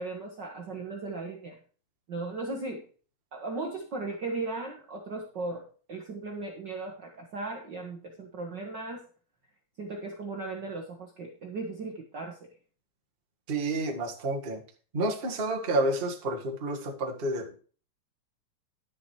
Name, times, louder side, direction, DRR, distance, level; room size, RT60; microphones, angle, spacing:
voice 1, 0.0-1.6 2.1-2.8 3.3-9.1 9.8-12.5, right 3 dB, 45° right, 1 dB, 1.5 m, -37 dB
voice 2, 13.5-14.6 14.9-17.6, right 2 dB, 25° right, 1 dB, 1.4 m, -30 dB
11.0 x 6.7 x 4.7 m, 0.40 s
omnidirectional pair, 3.4 m